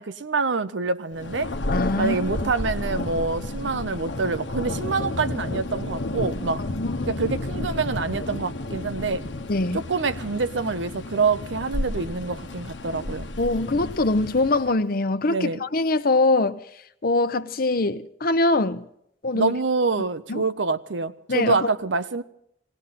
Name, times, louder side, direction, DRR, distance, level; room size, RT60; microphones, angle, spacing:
voice 1, 0.0-1.5 2.0-6.6 7.1-9.2 9.7-13.3 15.3-15.6 19.3-22.2, right 4 dB, 85° right, 0.8 m, -26 dB
Thunder, 1.2-14.8, left 2 dB, 85° left, 1.1 m, -31 dB
voice 2, 1.7-2.5 6.6-7.2 9.5-9.8 13.4-16.6 17.0-18.8 19.2-19.5 20.3-20.4 21.3-21.7, left 2 dB, 50° left, 0.8 m, -23 dB
19.0 x 18.0 x 4.2 m
head